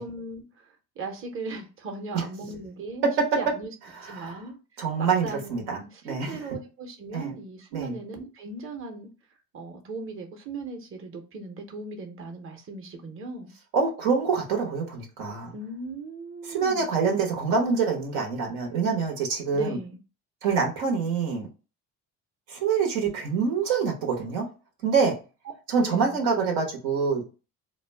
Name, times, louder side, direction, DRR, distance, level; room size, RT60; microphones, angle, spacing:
voice 1, 0.0-3.0 3.4-3.7 4.0-4.6 5.0-9.1 9.5-13.5 15.5-16.9 19.5-20.0 25.8-26.4, right 3 dB, 35° right, 0.8 m, -38 dB
voice 2, 3.0-3.4 4.0-4.4 4.8-5.8 6.0-6.4 7.1-7.3 7.7-8.0 13.7-15.5 16.5-19.8 20.4-21.5 22.5-24.5 24.8-25.2 25.7-27.2, right 5 dB, 85° right, 1.0 m, -25 dB
2.3 x 2.1 x 3.3 m
supercardioid pair, 80°, 38 cm